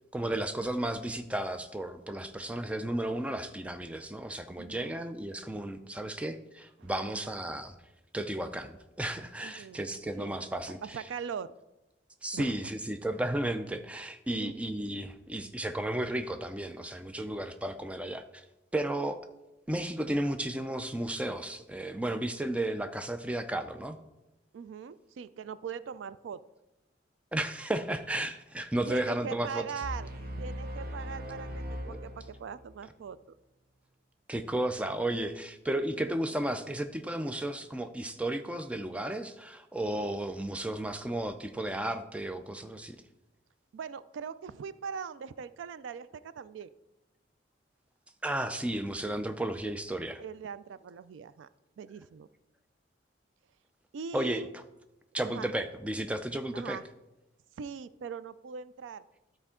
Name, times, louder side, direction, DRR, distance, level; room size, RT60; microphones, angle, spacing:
voice 1, 0.1-7.7 8.1-11.0 12.2-18.4 18.7-19.3 19.7-24.0 27.3-29.7 31.8-32.0 34.3-43.0 48.2-50.2 54.1-54.6 55.1-56.8, right 1 dB, 5° right, 8 dB, 0.4 m, -33 dB
voice 2, 4.6-5.0 5.9-6.2 6.8-7.3 9.4-9.8 10.2-10.3 10.8-11.5 12.3-12.5 14.3-14.5 22.7-22.9 24.5-26.4 28.9-30.1 30.4-33.4 35.9-36.4 43.7-46.7 50.2-51.5 51.8-52.3 53.9-54.6 55.2-55.5 56.5-56.8 57.6-59.0, right 6 dB, 80° right, 16 dB, 0.3 m, -41 dB
sound 1, 29.8-32.8, equal, 50° right, 0.8 m, -39 dB
12.5 x 4.4 x 3.7 m, 0.97 s
head